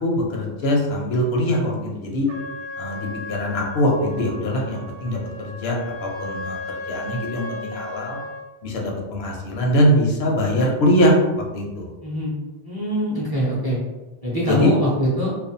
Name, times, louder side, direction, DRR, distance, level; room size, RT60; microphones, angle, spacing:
voice 1, 0.0-2.3 2.8-6.6 6.9-8.2 8.6-8.8 9.1-11.2 11.5-11.8 14.5-14.7, equal, 85° left, -1 dB, 0.9 m, -22 dB
Trumpet, 2.3-8.5, left 2 dB, 85° right, 0.8 m, -35 dB
voice 2, 12.0-12.3 12.6-13.8 14.2-15.3, equal, 30° right, -7 dB, 0.5 m, -23 dB
2.4 x 2.2 x 2.5 m, 1.1 s
omnidirectional pair, 1.0 m